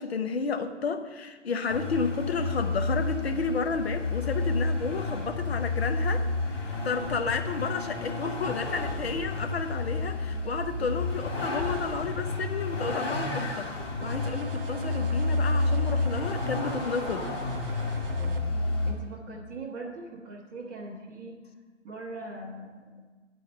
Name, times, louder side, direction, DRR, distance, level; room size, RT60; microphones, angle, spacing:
voice 1, 0.0-6.3 6.6-17.3, left 5 dB, 60° left, 7 dB, 0.9 m, -32 dB
Vehicle, 1.7-18.9, left 2 dB, 20° left, 1.6 m, -30 dB
sound 1, 14.0-18.4, right 7 dB, 50° right, 0.5 m, -43 dB
voice 2, 18.1-18.6 18.9-21.3 21.8-22.9, right 2 dB, 15° right, -7 dB, 1.1 m, -41 dB
9.0 x 4.5 x 6.6 m, 1.4 s
figure-of-eight pair, 130°, 36 cm